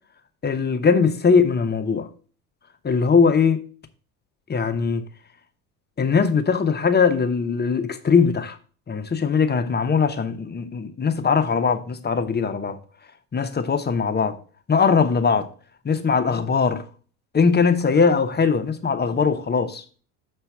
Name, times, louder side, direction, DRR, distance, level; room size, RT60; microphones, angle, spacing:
voice 1, 0.4-2.1 2.8-3.6 4.5-5.1 6.0-8.6 8.9-12.8 13.3-14.4 14.7-15.5 15.8-16.8 17.3-19.8, left 5 dB, 20° left, 1.0 m, -20 dB
7.1 x 4.4 x 5.5 m
hypercardioid pair, 70°, 47 cm